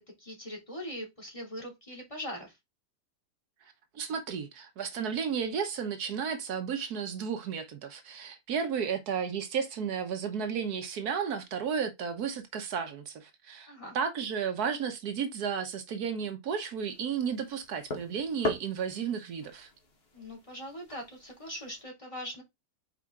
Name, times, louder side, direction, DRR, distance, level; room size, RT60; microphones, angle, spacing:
voice 1, 0.0-2.5 13.7-13.9 20.1-22.4, equal, 20° left, 2.7 m, -41 dB
voice 2, 3.9-19.7, right 7 dB, 75° right, 1.4 m, -33 dB
sound 1, 16.8-21.8, left 1 dB, 40° left, 1.6 m, -40 dB
5.5 x 4.6 x 3.7 m
omnidirectional pair, 1.7 m